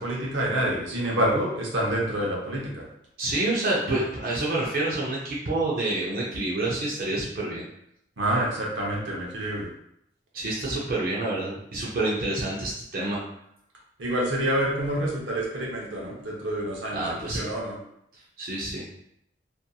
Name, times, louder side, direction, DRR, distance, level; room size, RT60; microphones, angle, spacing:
voice 1, 0.0-2.8 8.2-9.7 14.0-17.7, right 1 dB, 85° right, -3 dB, 0.8 m, -27 dB
voice 2, 3.2-7.7 10.3-13.2 16.9-17.5 18.4-18.8, right 2 dB, 50° right, -5 dB, 0.5 m, -28 dB
2.7 x 2.5 x 2.2 m, 0.75 s
head